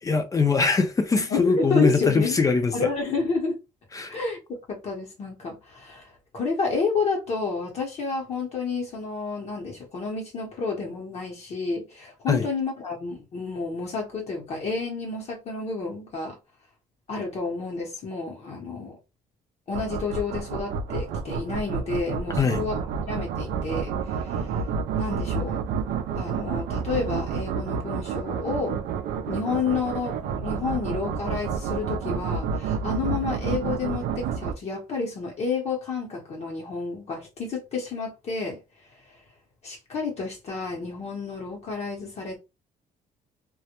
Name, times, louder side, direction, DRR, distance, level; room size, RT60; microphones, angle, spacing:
voice 1, 0.0-2.9 3.9-4.1 12.3-12.5 22.4-22.7, left 4 dB, 25° left, 0.4 m, -22 dB
voice 2, 1.1-2.4 2.7-3.6 4.1-16.4 17.1-19.0 19.7-24.6 25.0-25.6 26.2-28.8 29.3-38.6 39.6-42.4, left 4 dB, 50° left, 0.8 m, -30 dB
sound 1, 19.7-34.5, right 6 dB, 80° right, 0.4 m, -29 dB
2.2 x 2.1 x 2.9 m
cardioid pair, 115°, 15 cm